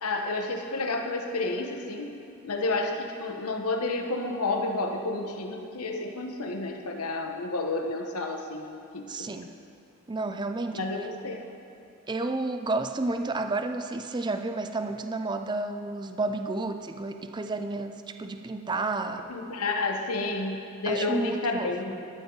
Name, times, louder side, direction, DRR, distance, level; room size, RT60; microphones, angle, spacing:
voice 1, 0.0-2.1 2.4-8.7 8.9-9.1 10.7-11.4 19.3-22.1, left 2 dB, 85° left, 3 dB, 1.1 m, -30 dB
voice 2, 9.1-9.5 10.1-10.8 12.1-19.2 20.9-22.0, right 2 dB, 20° right, 7 dB, 0.4 m, -31 dB
12.5 x 12.5 x 3.9 m, 2.7 s
head